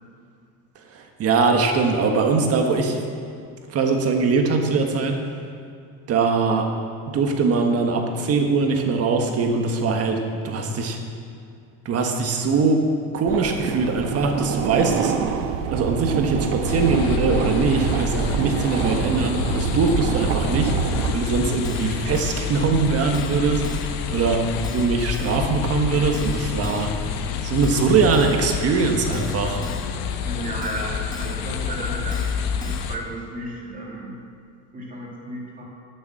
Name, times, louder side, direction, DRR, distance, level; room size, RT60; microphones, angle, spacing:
voice 1, 0.9-3.0 3.7-5.2 6.1-6.7 7.1-10.2 10.4-11.0 11.8-12.8 13.1-15.1 15.7-20.7 21.1-24.4 24.7-26.9 27.4-29.6, right 4 dB, 40° right, 3 dB, 1.5 m, -21 dB
sound 1, 13.3-21.1, right 7 dB, 70° right, 1.1 m, -26 dB
sound 2, 16.7-33.0, left 7 dB, 75° left, 1.1 m, -28 dB
Keyboard (musical), 21.2-21.3 21.6-21.9 22.1-22.4 22.6-22.7 23.1-23.4 23.6-23.9 24.1-24.2 24.6-24.9 25.1-25.4 25.6-25.7 26.1-26.4 26.6-26.9 27.1-27.2 27.6-27.9 28.1-28.4 28.6-28.7 29.1-29.4 29.6-29.9 30.1-30.2 30.6-30.8 31.1-31.3 31.6-31.7 32.1-32.3 32.6-32.8, left 2 dB, 10° left, 1.4 m, -39 dB
voice 2, 30.2-32.3 32.6-34.2 34.7-35.7, right 1 dB, 20° right, -3 dB, 2.3 m, -33 dB
12.0 x 7.1 x 7.4 m, 2.4 s
cardioid pair, 145°, 39 cm